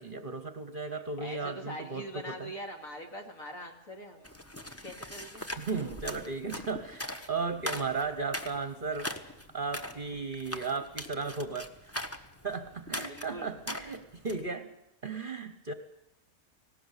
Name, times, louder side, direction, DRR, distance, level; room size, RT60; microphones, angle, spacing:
voice 1, 0.0-2.5 5.4-9.1 9.5-12.1 12.4-14.7 15.0-15.7, right 4 dB, 40° right, 10 dB, 1.1 m, -35 dB
voice 2, 1.2-4.3 4.8-5.4 13.1-13.5, equal, 60° left, 3 dB, 2.9 m, -43 dB
sound 1, 4.2-14.5, left 1 dB, 10° left, 0.9 m, -41 dB
18.5 x 18.0 x 8.3 m, 0.82 s
omnidirectional pair, 1.6 m